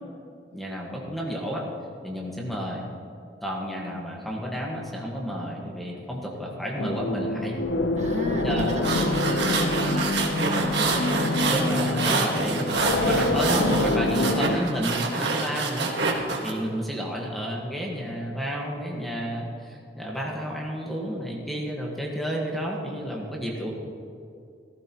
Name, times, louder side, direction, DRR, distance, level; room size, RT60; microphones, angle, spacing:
voice 1, 0.5-1.6 2.0-2.8 3.4-7.6 8.3-9.1 11.4-12.6 13.1-15.9 16.4-23.7, equal, ahead, -2 dB, 1.4 m, -31 dB
sound 1, 6.8-14.6, left 2 dB, 85° left, 0.7 m, -26 dB
voice 2, 8.0-12.0 12.5-12.9 13.3-13.8, equal, 40° right, 0 dB, 1.5 m, -34 dB
sound 2, 8.6-16.5, right 3 dB, 70° right, 1.6 m, -27 dB
16.0 x 14.5 x 3.0 m, 2.3 s
head